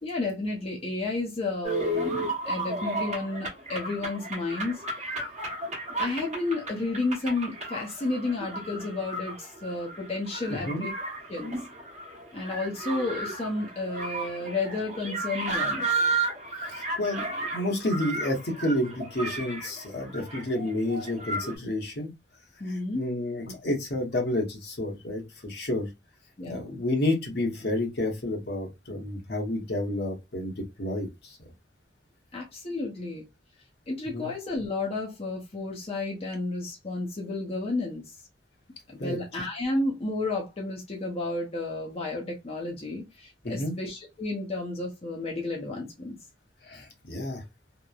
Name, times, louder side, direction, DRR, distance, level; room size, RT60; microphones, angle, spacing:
voice 1, 0.0-4.8 6.0-10.9 11.3-11.5 12.3-15.9 22.6-23.0 26.4-26.8 32.3-33.2 33.9-38.1 38.9-46.2, left 2 dB, 35° left, 0.6 m, -32 dB
sound 1, 1.6-21.6, right 2 dB, 40° right, 0.9 m, -33 dB
voice 2, 10.5-10.8 16.6-22.1 22.9-25.9 26.4-31.4 34.1-34.3 39.0-39.2 43.4-43.8 46.6-47.4, left 1 dB, 60° left, 0.9 m, -30 dB
2.9 x 2.1 x 2.3 m
head